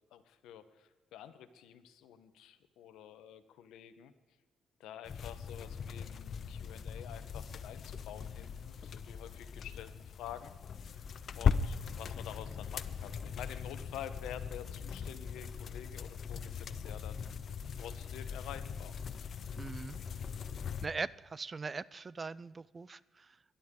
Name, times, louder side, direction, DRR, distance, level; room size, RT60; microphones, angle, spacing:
voice 1, 0.1-4.1 4.8-10.5 10.8-11.1 11.3-17.2 17.8-18.9, left 10 dB, 90° left, 12 dB, 1.0 m, -49 dB
sound 1, 5.1-20.9, left 6 dB, 55° left, 0.6 m, -39 dB
voice 2, 19.6-20.0 20.8-23.4, right 4 dB, 30° right, 21 dB, 0.4 m, -41 dB
21.0 x 11.5 x 3.8 m, 1.2 s
cardioid pair, 90°, 0 cm